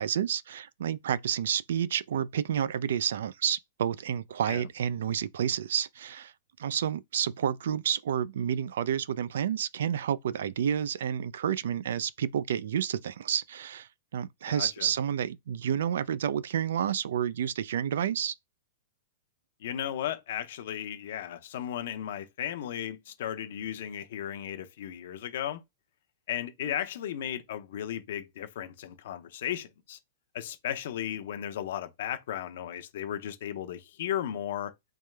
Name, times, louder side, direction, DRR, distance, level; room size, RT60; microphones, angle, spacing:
voice 1, 0.0-6.3 6.6-18.3, right 9 dB, 75° right, 0.3 m, -30 dB
voice 2, 14.5-14.9 19.6-25.6 26.3-30.0 30.3-34.7, left 10 dB, 60° left, 0.7 m, -35 dB
3.4 x 3.3 x 3.2 m
supercardioid pair, 165°, 0 cm